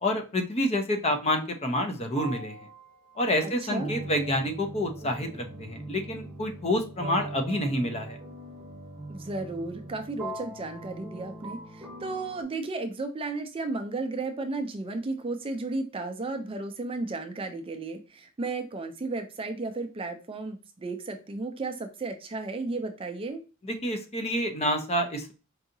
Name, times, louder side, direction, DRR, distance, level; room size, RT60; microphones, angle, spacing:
voice 1, 0.0-2.6 3.2-8.2 23.6-25.3, left 1 dB, 30° left, 4 dB, 0.6 m, -28 dB
sound 1, 1.3-1.5 2.1-12.4, right 2 dB, 5° right, 0.9 m, -41 dB
voice 2, 3.4-3.9 9.1-23.4, right 3 dB, 25° right, 7 dB, 0.4 m, -34 dB
4.6 x 2.8 x 2.6 m, 0.34 s
head